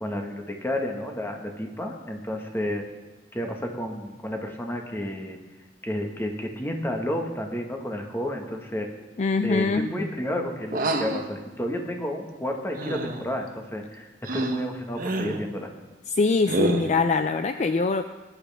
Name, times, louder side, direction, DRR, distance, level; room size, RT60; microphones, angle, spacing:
voice 1, 0.0-2.8 3.3-5.4 5.8-8.9 9.4-14.1 14.3-15.7, left 1 dB, 15° left, 2 dB, 1.5 m, -31 dB
voice 2, 9.2-9.9 16.1-18.0, left 3 dB, 40° left, 9 dB, 0.4 m, -23 dB
sound 1, 10.7-11.2 12.8-13.3 14.2-14.6 15.0-15.4 16.5-17.0, right 2 dB, 50° right, 1.0 m, -28 dB
19.5 x 11.0 x 3.5 m, 1.2 s
head